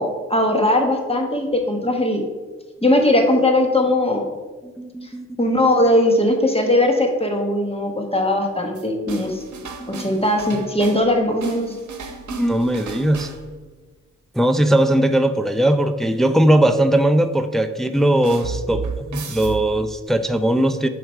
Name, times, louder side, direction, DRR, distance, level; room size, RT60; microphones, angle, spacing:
voice 1, 0.0-2.2 2.8-4.3 5.4-9.4 9.9-11.8, left 1 dB, 20° left, 3 dB, 1.3 m, -19 dB
voice 2, 4.8-5.3 9.3-9.4 9.6-10.1 12.1-13.3 14.3-20.9, right 1 dB, ahead, 8 dB, 0.4 m, -19 dB
sound 1, 8.7-11.1 11.4-13.6 18.2-20.1, right 5 dB, 80° right, 0.8 m, -34 dB
6.0 x 4.5 x 4.4 m, 1.3 s
cardioid pair, 55°, 29 cm